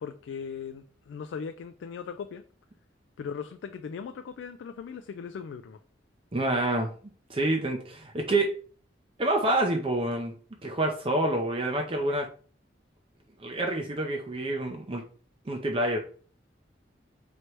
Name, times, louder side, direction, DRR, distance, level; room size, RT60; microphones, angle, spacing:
voice 1, 0.0-2.4 3.2-5.8, left 6 dB, 90° left, 9 dB, 0.3 m, -38 dB
voice 2, 6.3-6.9 7.3-8.5 9.2-10.3 10.6-12.3 13.4-15.0 15.5-16.0, right 1 dB, 30° right, 3 dB, 0.5 m, -27 dB
3.2 x 2.9 x 4.4 m, 0.43 s
head